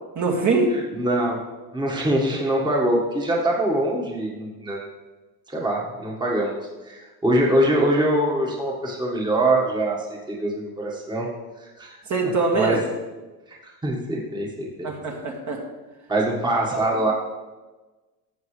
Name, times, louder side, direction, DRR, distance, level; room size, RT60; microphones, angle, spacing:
voice 1, 0.2-0.7 12.1-12.8 14.8-15.6 16.7-16.8, right 3 dB, 40° right, 0 dB, 2.0 m, -23 dB
voice 2, 0.7-1.4 1.7-4.9 5.5-11.3 11.6-12.0 12.5-12.8 13.5-13.6 13.8-14.9 16.1-17.1, right 1 dB, 10° right, -2 dB, 1.6 m, -23 dB
13.5 x 7.3 x 3.3 m, 1.2 s
supercardioid pair, 100°, 45 cm